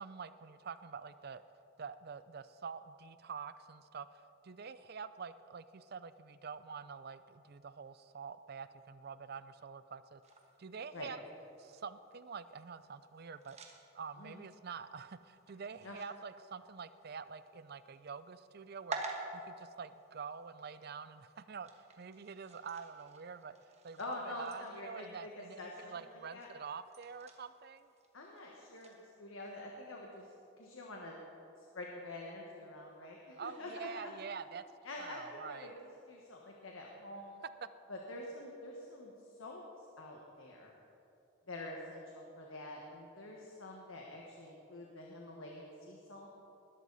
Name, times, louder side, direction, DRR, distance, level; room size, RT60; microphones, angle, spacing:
voice 1, 0.0-1.4 1.8-10.2 10.6-11.2 11.6-23.6 23.8-27.9 33.4-34.6 35.0-35.7, right 6 dB, 50° right, 14 dB, 0.4 m, -47 dB
sound 1, 10.2-29.1, right 3 dB, 30° right, 1.4 m, -52 dB
voice 2, 24.0-26.5 28.1-31.2 31.6-34.1 34.8-35.7 36.1-37.4 37.9-39.1 39.4-40.7 41.5-46.3, left 2 dB, 80° left, -1 dB, 1.5 m, -47 dB
20.0 x 12.5 x 4.1 m, 2.8 s
head